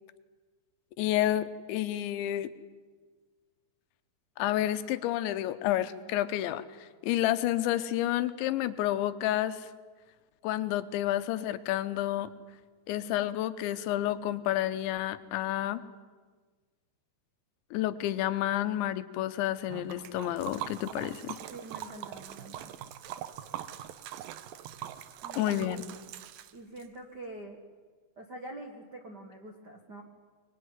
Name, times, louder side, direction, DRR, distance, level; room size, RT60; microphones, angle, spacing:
voice 1, 1.0-2.5 4.4-9.7 10.4-12.3 12.9-15.8 17.7-21.4 25.4-25.8, left 13 dB, 85° left, 11 dB, 3.2 m, -30 dB
Liquid, 19.7-26.9, right 11 dB, 75° right, 2.2 m, -42 dB
voice 2, 21.5-22.7 25.2-25.8 26.5-27.6 28.2-30.0, right 2 dB, 60° right, 3 dB, 1.1 m, -45 dB
23.5 x 21.5 x 9.6 m, 1.4 s
omnidirectional pair, 5.2 m